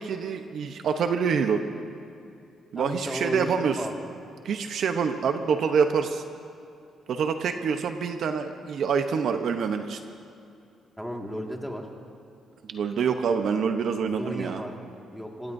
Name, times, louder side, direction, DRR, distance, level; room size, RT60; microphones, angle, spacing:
voice 1, 0.0-1.6 2.7-3.9 4.4-6.2 7.1-10.0 12.7-14.6, right 6 dB, 65° right, 7 dB, 0.9 m, -26 dB
voice 2, 2.8-4.0 11.0-11.9 14.0-15.5, equal, ahead, 1 dB, 2.0 m, -35 dB
25.0 x 18.0 x 2.7 m, 2.6 s
cardioid pair, 90°, 0 cm